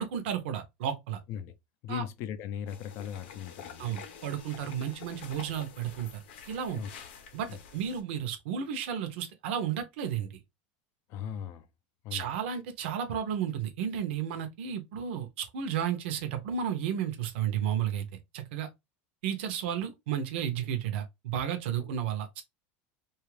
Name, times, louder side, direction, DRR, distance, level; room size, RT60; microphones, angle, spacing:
voice 1, 0.0-1.2 1.9-2.1 3.8-6.2 6.5-6.8 7.3-10.4 12.1-18.1 18.3-18.7 19.2-22.4, right 8 dB, 80° right, 0.6 m, -33 dB
voice 2, 1.8-3.9 6.8-6.9 7.5-7.6 11.1-11.7 12.0-12.4 21.8-22.1, left 9 dB, 45° left, 0.4 m, -39 dB
sound 1, 2.7-8.0, left 7 dB, 80° left, 0.7 m, -48 dB
2.8 x 2.3 x 3.1 m
supercardioid pair, 150°, 6 cm